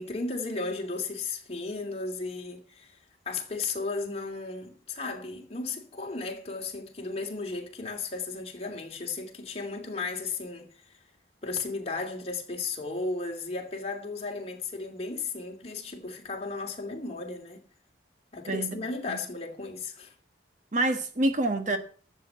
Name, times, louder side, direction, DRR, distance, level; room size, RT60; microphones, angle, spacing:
voice 1, 0.0-3.0 3.2-10.7 11.4-17.6 18.3-20.1, left 3 dB, 35° left, 2.7 m, -35 dB
voice 2, 18.5-19.2 20.7-21.8, right 2 dB, 40° right, 1.3 m, -27 dB
12.0 x 8.2 x 7.1 m
head